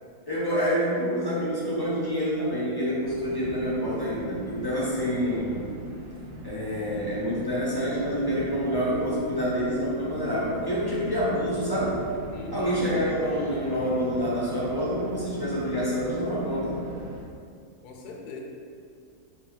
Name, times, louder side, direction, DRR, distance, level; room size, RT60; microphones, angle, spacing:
voice 1, 0.3-5.6 6.4-12.0 12.5-16.8, equal, 25° left, -8 dB, 0.6 m, -27 dB
sound 1, 3.0-17.2, right 2 dB, 70° right, 1.0 m, -40 dB
voice 2, 12.3-12.8 17.8-18.4, left 3 dB, 75° left, 0 dB, 1.1 m, -39 dB
4.0 x 2.5 x 4.5 m, 2.3 s
omnidirectional pair, 1.7 m